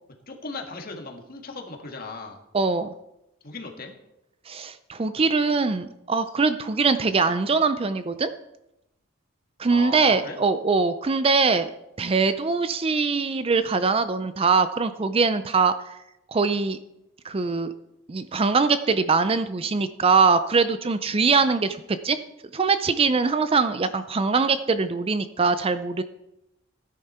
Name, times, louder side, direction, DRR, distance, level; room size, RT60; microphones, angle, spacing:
voice 1, 0.3-2.4 3.4-3.9 9.7-10.4, left 3 dB, 45° left, 2 dB, 1.7 m, -36 dB
voice 2, 2.5-2.9 4.5-8.3 9.6-11.7 12.0-16.0 16.3-16.8 17.2-17.7 18.1-21.8 22.0-22.2 22.5-26.0, right 4 dB, 25° right, 11 dB, 0.4 m, -22 dB
16.0 x 10.5 x 4.3 m, 0.89 s
head